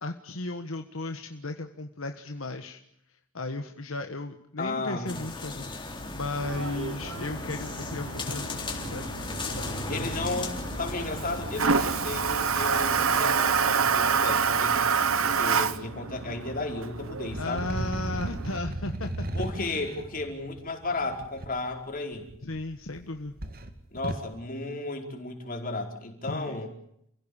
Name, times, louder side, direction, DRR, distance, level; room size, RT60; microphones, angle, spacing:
voice 1, 0.0-2.8 3.1-9.0 9.5-10.1 17.4-19.1 19.4-19.5 22.4-23.4 26.2-26.6, left 2 dB, 70° left, 6 dB, 1.5 m, -35 dB
voice 2, 4.6-5.1 9.9-10.5 10.8-14.9 15.2-17.7 19.3-22.3 23.9-26.7, left 2 dB, 45° left, 3 dB, 4.9 m, -34 dB
sound 1, 5.1-13.2, left 2 dB, 25° left, 3.7 m, -36 dB
Toilet flush, 6.3-18.6, right 5 dB, 75° right, 1.3 m, -28 dB
sound 2, 17.3-21.5 22.3-23.0 23.3-24.3, right 1 dB, 45° right, 2.3 m, -35 dB
29.5 x 16.5 x 8.8 m, 0.75 s
head